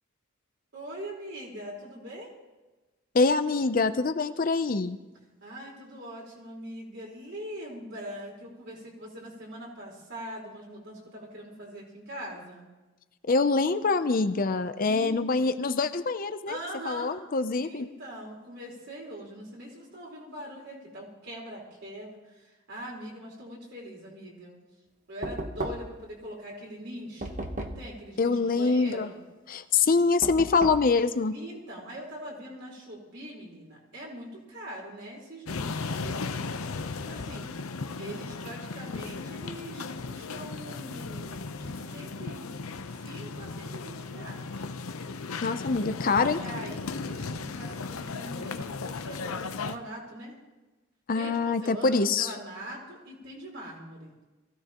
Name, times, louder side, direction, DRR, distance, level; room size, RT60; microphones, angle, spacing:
voice 1, 0.7-2.4 5.4-12.7 14.8-15.2 16.5-17.2 17.6-24.6 25.1-29.2 31.3-36.3 37.1-37.5 38.0-42.5 42.9-44.6 46.1-50.4 51.1-54.1, equal, 55° right, -3 dB, 4.3 m, -42 dB
voice 2, 3.1-5.0 13.3-16.6 16.9-17.9 28.2-29.1 29.5-31.3 45.4-46.4 51.1-52.3, left 4 dB, 40° left, 10 dB, 0.5 m, -25 dB
Knock, 25.2-26.1 27.2-28.0 30.2-30.9, right 1 dB, 35° right, 1.1 m, -35 dB
sound 1, 35.5-49.8, left 4 dB, 80° left, 0.8 m, -36 dB
23.0 x 15.5 x 3.0 m, 1.2 s
head